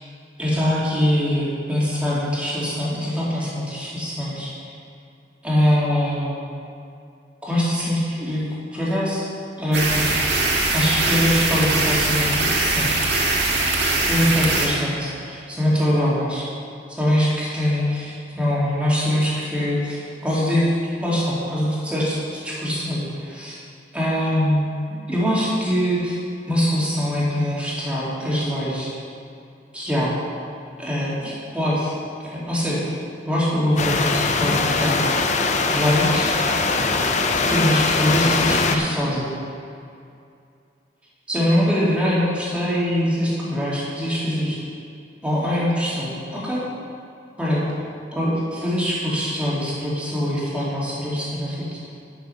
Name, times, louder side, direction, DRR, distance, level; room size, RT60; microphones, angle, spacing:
voice 1, 0.4-4.5 5.4-6.4 7.4-8.4 8.7-9.2 9.6-10.1 10.7-12.9 14.0-16.5 17.0-20.7 21.0-23.5 23.9-24.7 25.1-26.2 26.5-28.9 29.7-30.2 30.8-31.9 32.3-32.9 33.2-35.3 35.7-36.3 37.3-39.3 41.3-44.6 45.2-46.6 47.4-47.6 48.1-51.8, equal, 5° right, -8 dB, 2.7 m, -23 dB
sound 1, 9.7-14.7, right 2 dB, 80° right, 1.7 m, -21 dB
sound 2, 33.8-38.8, left 3 dB, 40° left, 0.7 m, -21 dB
10.5 x 6.8 x 5.7 m, 2.5 s
head